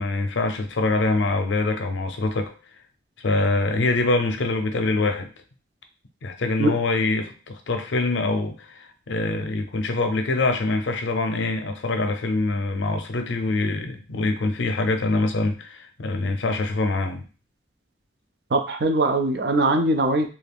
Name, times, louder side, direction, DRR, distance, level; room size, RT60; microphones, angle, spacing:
voice 1, 0.0-2.5 3.2-5.3 6.2-17.2, left 2 dB, 85° left, 0.5 m, -24 dB
voice 2, 18.5-20.3, right 2 dB, 60° right, 0.5 m, -21 dB
2.7 x 2.4 x 3.4 m
head